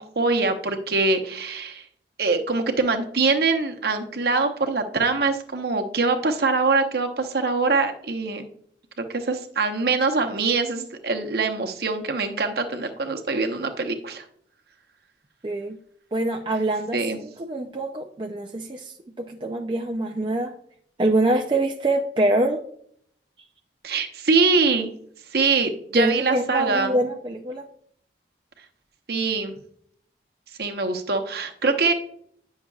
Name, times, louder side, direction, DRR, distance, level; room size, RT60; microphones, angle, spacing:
voice 1, 0.0-1.8 2.2-8.4 9.1-14.2 16.9-17.2 23.8-24.9 25.3-27.0 29.1-29.5 30.6-31.9, right 4 dB, 55° right, 5 dB, 0.8 m, -23 dB
voice 2, 15.4-15.8 16.1-20.5 21.0-22.6 25.9-27.7, right 2 dB, 25° right, 3 dB, 0.4 m, -25 dB
9.6 x 6.4 x 2.4 m, 0.63 s
head